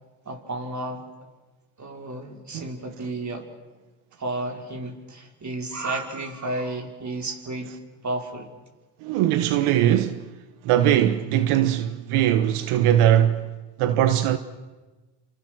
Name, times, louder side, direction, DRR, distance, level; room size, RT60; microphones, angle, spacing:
voice 1, 0.3-1.1 1.8-3.5 4.2-7.7 8.0-8.5, right 2 dB, 35° right, 5.2 m, -32 dB
voice 2, 9.0-10.2 10.6-13.5 13.8-14.4, right 11 dB, 85° right, 1.3 m, -20 dB
29.5 x 27.0 x 6.3 m
cardioid pair, 80°, 49 cm